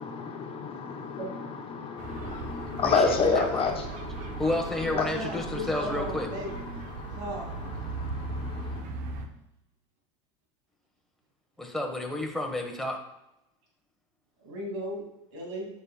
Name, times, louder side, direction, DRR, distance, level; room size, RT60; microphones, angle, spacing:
voice 1, 0.0-8.8, left 5 dB, 35° left, 3 dB, 1.0 m, -31 dB
sound 1, 2.0-9.3, right 3 dB, 55° right, 1.0 m, -38 dB
voice 2, 2.8-3.6 4.4-6.3 11.6-13.0, left 1 dB, ahead, 0 dB, 1.4 m, -31 dB
voice 3, 4.9-6.5 7.2-7.5 14.4-15.0 15.3-15.7, right 1 dB, 80° right, -1 dB, 2.5 m, -36 dB
9.5 x 5.6 x 2.3 m, 0.89 s
supercardioid pair, 105°, 16 cm